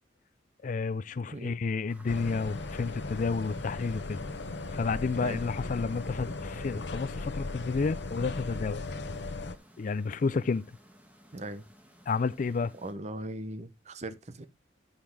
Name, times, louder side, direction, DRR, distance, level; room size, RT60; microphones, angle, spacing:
voice 1, 0.6-4.2 4.7-8.8 9.8-10.7 12.1-12.7, left 4 dB, 45° left, 0.4 m, -31 dB
sound 1, 1.9-12.9, equal, 10° right, 1.4 m, -57 dB
sound 2, 2.1-9.6, left 3 dB, 85° left, 0.9 m, -37 dB
voice 2, 11.3-11.7 12.7-14.5, right 1 dB, 40° right, 0.8 m, -39 dB
8.9 x 5.6 x 4.7 m
head